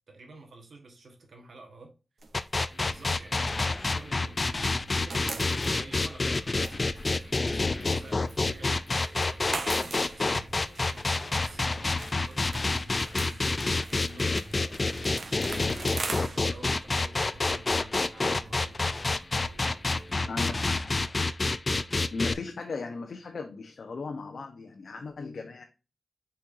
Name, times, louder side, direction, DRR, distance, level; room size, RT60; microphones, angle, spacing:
voice 1, 0.1-1.9 2.8-8.7 9.1-13.4 13.9-15.7 16.0-19.3 19.9-21.0, right 2 dB, 80° right, 1.5 m, -50 dB
sound 1, 2.2-4.4 4.7-20.2, right 3 dB, 55° right, 1.0 m, -42 dB
sound 2, 2.3-22.3, left 3 dB, 35° left, 0.4 m, -28 dB
sound 3, 2.7-20.7, right 1 dB, 40° right, 2.7 m, -51 dB
voice 2, 22.1-25.6, left 3 dB, 80° left, 0.8 m, -36 dB
8.5 x 4.4 x 2.6 m
wide cardioid pair, 125°, 0 cm